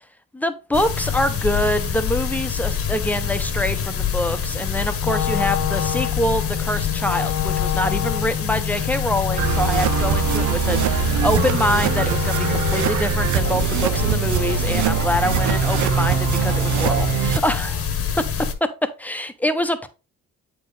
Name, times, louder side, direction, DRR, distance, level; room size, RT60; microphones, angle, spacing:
voice 1, 0.3-17.8 18.8-19.9, left 1 dB, 5° left, 0.8 m, -25 dB
sound 1, 0.7-18.5, left 7 dB, 50° left, 1.2 m, -26 dB
Wind instrument woodwind instrument, 5.0-13.2, left 12 dB, 65° left, 0.6 m, -28 dB
sound 2, 9.4-17.4, right 10 dB, 75° right, 0.6 m, -22 dB
8.2 x 4.3 x 3.2 m
cardioid pair, 90°, 30 cm